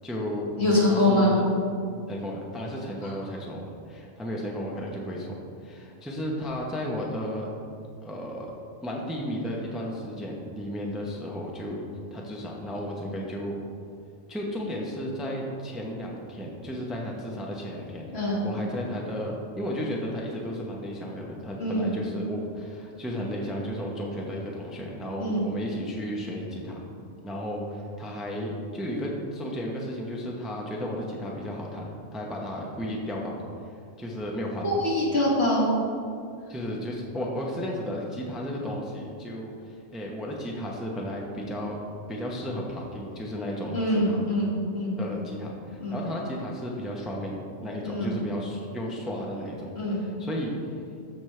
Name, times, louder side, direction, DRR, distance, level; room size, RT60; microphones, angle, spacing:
voice 1, 0.0-0.5 0.9-1.4 2.1-5.4 5.6-7.5 8.0-8.5 8.8-11.8 12.1-13.6 14.3-26.8 27.2-33.4 34.0-34.8 36.5-41.8 42.1-44.3 45.0-50.5, equal, ahead, -2 dB, 0.8 m, -34 dB
voice 2, 0.6-1.3 3.0-3.1 18.1-18.5 21.6-21.9 25.2-25.5 34.6-35.8 43.7-45.0 45.8-46.0 47.8-48.2 49.8-50.0, left 1 dB, 60° left, -6 dB, 2.4 m, -24 dB
13.5 x 5.2 x 3.3 m, 2.4 s
omnidirectional pair, 1.2 m